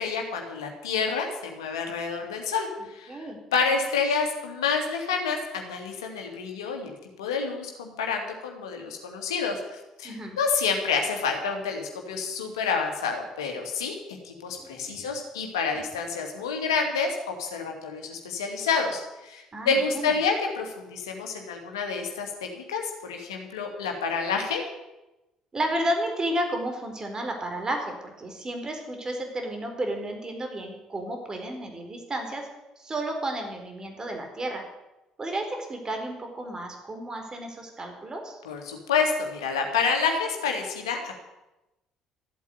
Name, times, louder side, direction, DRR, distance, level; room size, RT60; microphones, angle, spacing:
voice 1, 0.0-9.6 10.0-13.9 14.2-24.6 38.4-41.2, left 5 dB, 80° left, 3 dB, 2.5 m, -28 dB
voice 2, 10.0-10.4 14.6-15.1 19.5-20.1 25.5-32.5 32.8-34.6 35.2-38.4, right 1 dB, 30° right, 3 dB, 4.4 m, -32 dB
14.0 x 8.4 x 9.4 m, 0.97 s
figure-of-eight pair, 50°, 2 cm